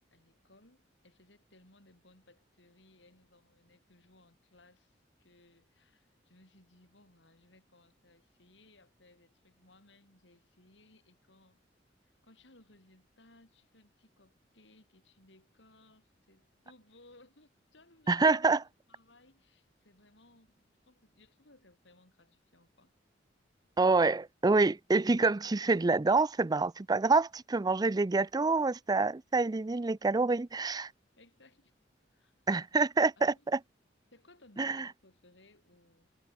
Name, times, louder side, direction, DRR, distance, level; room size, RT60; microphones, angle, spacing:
voice 1, 0.0-11.6 12.0-18.3 18.9-22.9 31.2-31.7 32.1-32.5 33.2-33.5 34.1-36.1, left 2 dB, 80° left, 6.7 m, -63 dB
voice 2, 18.1-18.6 23.8-30.9 32.5-33.6 34.6-34.9, right 3 dB, 20° right, 0.4 m, -27 dB
head